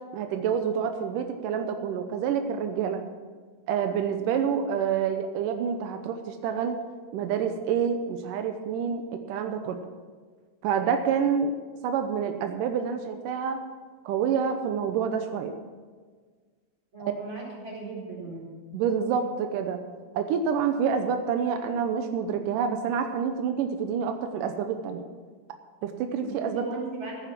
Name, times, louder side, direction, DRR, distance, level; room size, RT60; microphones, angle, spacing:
voice 1, 0.0-3.0 3.7-6.8 7.1-9.8 10.6-11.5 11.8-13.6 14.1-15.5 18.7-19.8 20.1-25.0 25.8-26.6, right 7 dB, 90° right, 6 dB, 2.4 m, -27 dB
voice 2, 16.9-18.4 26.2-27.3, right 3 dB, 35° right, -3 dB, 4.9 m, -37 dB
15.5 x 9.2 x 6.0 m, 1.5 s
omnidirectional pair, 3.7 m